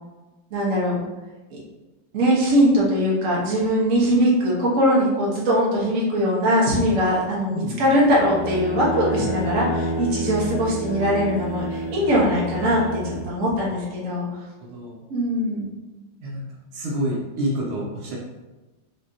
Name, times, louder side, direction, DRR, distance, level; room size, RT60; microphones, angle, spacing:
voice 1, 0.5-1.0 1.5-1.6 2.1-14.2 15.1-15.7, equal, 45° right, -6 dB, 1.4 m, -21 dB
voice 2, 7.5-8.1 13.7-13.8 14.6-15.0 16.2-18.2, equal, 75° right, -4 dB, 1.7 m, -29 dB
sound 1, 7.9-13.3, equal, 85° left, 1.7 m, -29 dB
5.0 x 3.3 x 2.8 m, 1.2 s
omnidirectional pair, 2.4 m